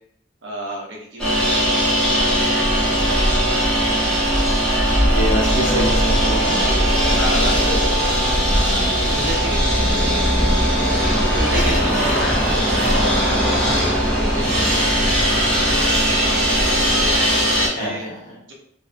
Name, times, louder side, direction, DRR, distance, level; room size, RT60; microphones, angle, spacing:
voice 1, 0.4-1.9 2.8-3.5 4.9-5.8 7.1-8.1 8.5-11.0 11.3-15.8 16.2-18.1 18.5-18.6, equal, 80° right, -2 dB, 0.7 m, -32 dB
sound 1, 1.2-17.7, equal, 5° left, 0.7 m, -19 dB
sound 2, 2.5-17.2, equal, 45° right, 1.0 m, -28 dB
voice 2, 5.0-6.6 17.7-18.4, right 1 dB, 45° left, -6 dB, 1.1 m, -26 dB
2.6 x 2.4 x 2.3 m, 0.71 s
head